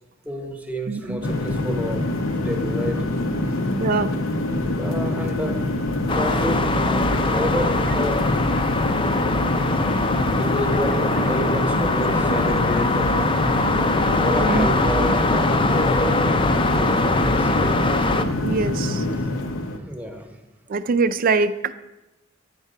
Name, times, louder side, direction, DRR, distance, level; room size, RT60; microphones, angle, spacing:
voice 1, 0.2-2.0 2.4-3.1 4.7-5.6 6.1-8.4 9.3-10.1 10.4-13.3 14.1-17.7 19.8-20.4, equal, 10° right, 4 dB, 0.9 m, -30 dB
voice 2, 0.9-1.3 3.8-4.2 14.4-14.7 18.4-19.1 20.7-21.7, right 4 dB, 45° right, 14 dB, 0.4 m, -23 dB
sound 1, 1.2-19.8, left 1 dB, 85° left, 0.7 m, -25 dB
sound 2, 6.1-18.2, left 2 dB, 25° left, 0.5 m, -22 dB
9.4 x 4.9 x 5.5 m, 1.0 s
head